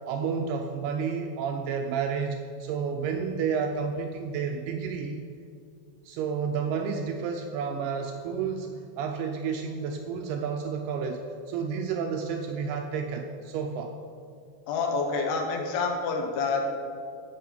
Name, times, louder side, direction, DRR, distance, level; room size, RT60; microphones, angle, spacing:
voice 1, 0.0-5.2 6.1-13.9, right 6 dB, 80° right, 3 dB, 2.4 m, -31 dB
voice 2, 14.7-16.7, left 4 dB, 75° left, 2 dB, 2.9 m, -27 dB
10.5 x 4.8 x 7.3 m, 2.3 s
omnidirectional pair, 5.0 m